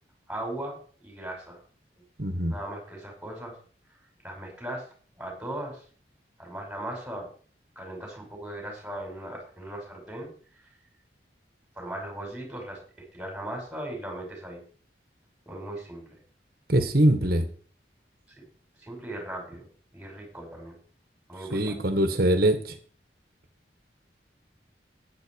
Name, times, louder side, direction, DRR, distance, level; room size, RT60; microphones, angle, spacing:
voice 1, 0.3-1.6 2.5-3.6 4.2-4.9 5.2-5.8 6.4-7.3 7.8-10.3 11.7-12.8 13.1-14.6 15.5-16.2 18.8-19.6 19.9-20.7 21.3-21.8, right 1 dB, 5° right, 0 dB, 5.8 m, -38 dB
voice 2, 2.2-2.6 16.7-17.4 21.5-22.8, right 1 dB, 55° right, 8 dB, 1.8 m, -23 dB
12.5 x 10.0 x 4.8 m, 0.43 s
head